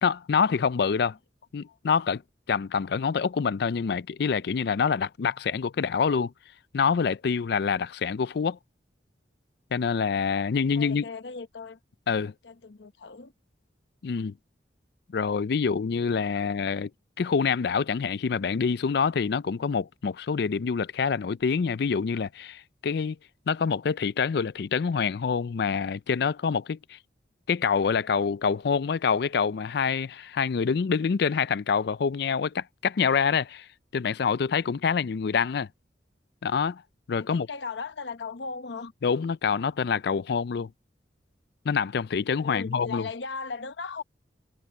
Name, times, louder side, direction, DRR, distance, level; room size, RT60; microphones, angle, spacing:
voice 1, 0.0-1.2 1.5-2.2 2.5-6.3 6.7-8.6 9.7-11.0 12.1-12.3 14.0-14.3 15.1-16.9 17.2-23.2 23.5-27.0 27.5-33.7 33.9-35.7 36.4-36.8 37.1-37.5 39.0-40.7 41.7-43.1, left 6 dB, 65° left, 0.4 m, -26 dB
voice 2, 10.7-11.8 12.4-13.3 15.7-15.8 16.3-16.5 37.2-38.9 42.4-44.0, left 4 dB, 85° left, 0.9 m, -37 dB
head